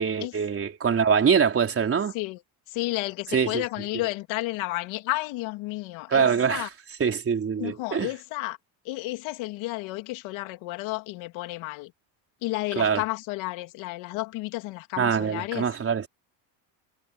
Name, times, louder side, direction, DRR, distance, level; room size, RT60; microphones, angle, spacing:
voice 1, 0.0-2.1 3.3-3.6 6.1-6.7 7.0-8.1 12.8-13.0 15.0-16.1, right 6 dB, 25° right, 4.3 m, -24 dB
voice 2, 2.7-6.7 7.6-8.6 8.8-11.9 12.4-15.6, left 20 dB, 70° left, 2.9 m, -32 dB
cardioid pair, 130°, 49 cm